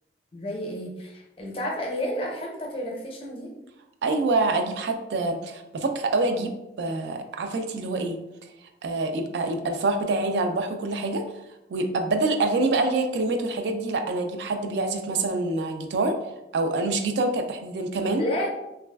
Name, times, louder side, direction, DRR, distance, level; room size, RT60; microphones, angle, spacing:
voice 1, 0.3-3.5 18.2-18.5, left 1 dB, 30° left, -1 dB, 0.5 m, -31 dB
voice 2, 4.0-8.2 8.8-11.2 11.7-16.2 16.5-18.2, right 2 dB, 80° right, 5 dB, 0.3 m, -26 dB
3.0 x 2.3 x 2.2 m, 0.93 s
head